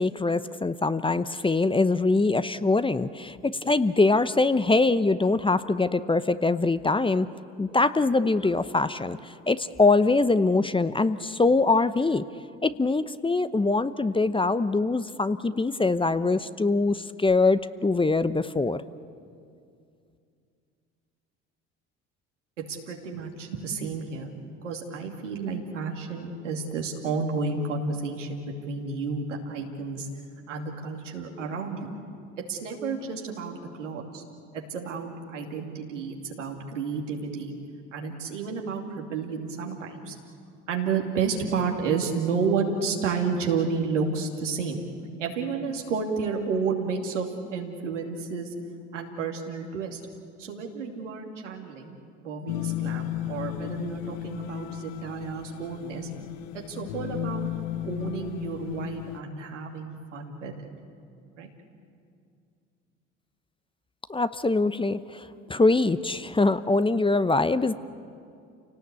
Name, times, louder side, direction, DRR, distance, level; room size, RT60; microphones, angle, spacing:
voice 1, 0.0-7.3 7.6-12.2 12.6-18.8 64.1-67.7, left 3 dB, 15° left, 13 dB, 0.9 m, -23 dB
voice 2, 22.6-24.3 24.6-30.1 30.5-31.9 32.5-34.2 34.5-37.5 37.9-40.2 40.7-44.8 45.2-48.5 48.9-50.0 50.4-51.9 52.2-56.1 56.5-57.5 57.8-60.5 61.4-61.5, right 5 dB, 90° right, 1 dB, 2.7 m, -31 dB
sound 1, 52.5-59.2, left 15 dB, 65° left, 0.9 m, -34 dB
29.0 x 18.5 x 8.3 m, 2.4 s
hypercardioid pair, 60°, 36 cm